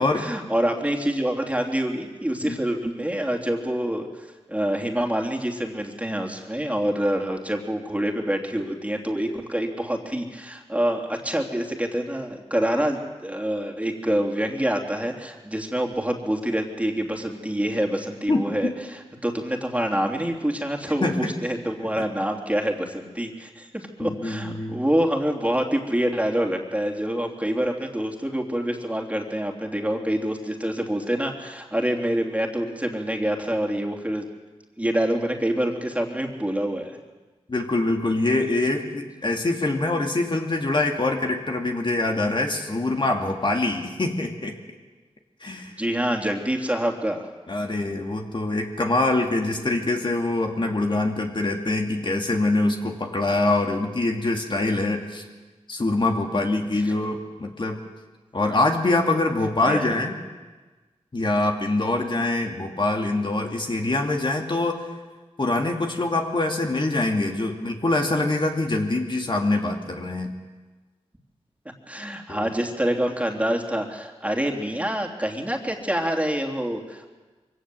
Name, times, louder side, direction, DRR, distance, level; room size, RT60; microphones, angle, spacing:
voice 1, 0.1-4.1 4.5-34.3 34.8-37.0 45.7-47.3 56.8-56.9 59.6-59.9 71.9-77.1, right 1 dB, 10° right, 1 dB, 3.2 m, -26 dB
voice 2, 21.0-21.3 24.0-24.8 37.5-44.6 45.4-45.7 47.5-55.2 55.7-57.8 58.3-60.2 61.1-64.9 65.4-70.4 72.3-72.5, left 2 dB, 45° left, 2 dB, 2.6 m, -24 dB
23.0 x 17.5 x 7.9 m, 1.3 s
cardioid pair, 50°, 12 cm